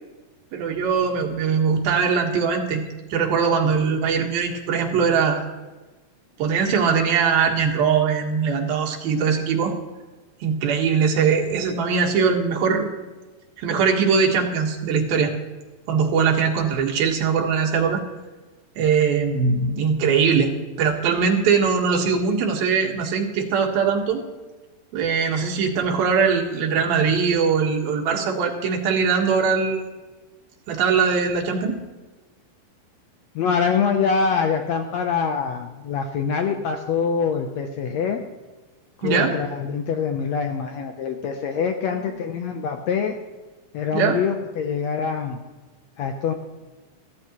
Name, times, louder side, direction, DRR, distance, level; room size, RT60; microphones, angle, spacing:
voice 1, 0.5-2.8 3.1-5.4 6.4-9.8 10.4-12.9 13.6-15.3 15.9-18.0 18.8-24.2 24.9-29.9 30.7-31.8 39.0-39.4 43.9-44.2, right 6 dB, 85° right, 1 dB, 3.3 m, -21 dB
voice 2, 33.3-38.2 39.0-43.2 43.7-45.4 46.0-46.3, left 6 dB, 80° left, 5 dB, 1.5 m, -24 dB
14.5 x 14.0 x 3.0 m, 1.2 s
omnidirectional pair, 4.1 m